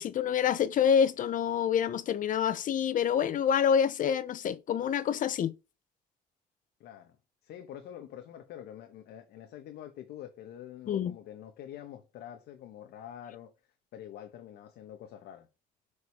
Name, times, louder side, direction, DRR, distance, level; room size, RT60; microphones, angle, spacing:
voice 1, 0.0-5.5 10.9-11.2, left 8 dB, 50° left, 0.8 m, -27 dB
voice 2, 6.8-7.2 7.4-13.5 13.9-15.5, left 10 dB, 75° left, 1.3 m, -46 dB
6.3 x 5.2 x 4.8 m
cardioid pair, 110°, 17 cm